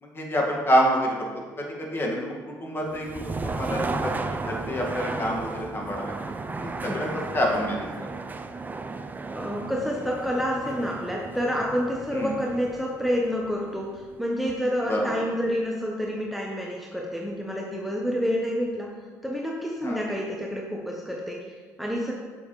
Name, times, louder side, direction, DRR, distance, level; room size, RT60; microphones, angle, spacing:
voice 1, 0.0-1.3 1.6-3.1 3.4-6.1 6.5-7.1 7.3-7.9 12.1-12.3 14.9-15.2 19.8-20.0, equal, 30° left, -1 dB, 1.9 m, -27 dB
sound 1, 2.9-14.7, right 3 dB, 25° right, 0.5 m, -35 dB
voice 2, 6.8-7.2 9.3-18.9 19.2-22.1, equal, ahead, -2 dB, 1.0 m, -29 dB
7.0 x 7.0 x 3.2 m, 1.5 s
supercardioid pair, 70°, 7 cm